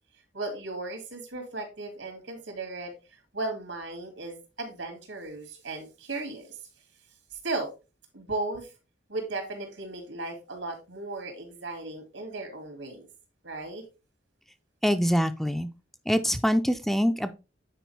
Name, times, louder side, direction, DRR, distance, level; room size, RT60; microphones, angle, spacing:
voice 1, 0.3-2.9 3.3-6.5 7.4-7.7 8.1-8.7 9.1-13.1 13.4-13.8, right 2 dB, 85° right, 5 dB, 2.5 m, -36 dB
voice 2, 14.8-15.7 16.1-17.3, equal, ahead, 8 dB, 0.4 m, -24 dB
9.1 x 4.8 x 3.3 m, 0.29 s
head